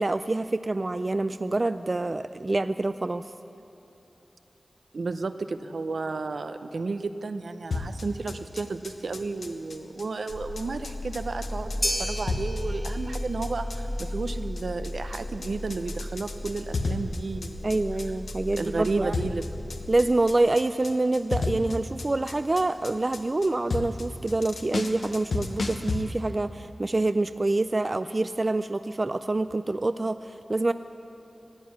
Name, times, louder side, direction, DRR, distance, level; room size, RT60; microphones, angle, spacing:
voice 1, 0.0-3.3 17.6-19.2 19.9-30.7, right 2 dB, 40° right, 11 dB, 0.3 m, -26 dB
voice 2, 4.9-17.7 18.6-19.4, right 3 dB, 80° right, 9 dB, 0.7 m, -32 dB
sound 1, 7.7-26.0, left 3 dB, 85° left, 1.1 m, -33 dB
sound 2, 10.3-20.2, left 1 dB, 50° left, 1.3 m, -36 dB
sound 3, 11.8-20.2, equal, 10° left, 1.7 m, -38 dB
15.0 x 9.4 x 9.7 m, 2.8 s
wide cardioid pair, 65°, 0 cm